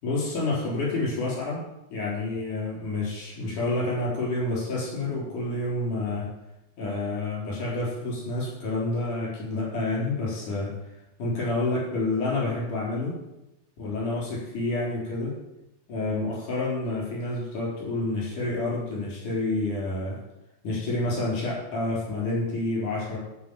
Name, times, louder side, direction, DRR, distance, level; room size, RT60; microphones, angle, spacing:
voice 1, 0.0-1.6 1.9-6.3 6.8-10.7 11.2-13.2 13.8-15.4 15.9-20.2 20.6-23.2, left 2 dB, 80° left, -6 dB, 5.4 m, -28 dB
12.5 x 4.9 x 8.3 m, 0.92 s
omnidirectional pair, 3.5 m